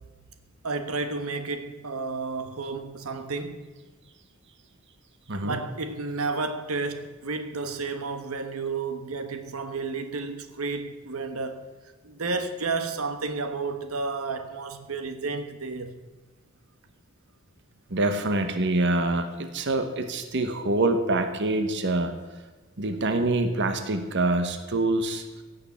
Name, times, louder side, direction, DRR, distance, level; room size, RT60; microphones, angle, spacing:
voice 1, 0.6-3.7 5.3-11.7 12.0-16.0, right 3 dB, 85° right, 1.2 m, -31 dB
voice 2, 17.9-22.1 22.8-25.2, right 2 dB, 55° right, 1.2 m, -25 dB
16.5 x 6.8 x 8.5 m
head